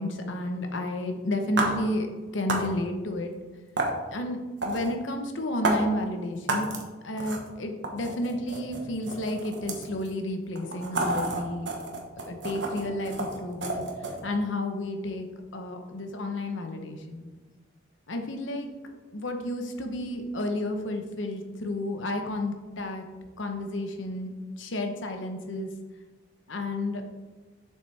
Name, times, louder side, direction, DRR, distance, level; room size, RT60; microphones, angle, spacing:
voice 1, 0.0-2.1 2.3-3.3 4.1-6.7 7.0-11.7 12.3-13.8 14.2-15.2 15.5-17.3 18.1-18.7 19.1-23.0 23.4-25.7 26.5-27.0, left 1 dB, 85° left, 4 dB, 1.0 m, -31 dB
sound 1, 1.6-1.7 2.5-2.7 3.8-3.9 4.6-4.9 5.6-5.8 6.5-6.8 7.2-7.5 7.8-10.1 10.6-14.2, right 2 dB, 65° right, 1.2 m, -30 dB
7.5 x 6.5 x 3.4 m, 1.3 s
head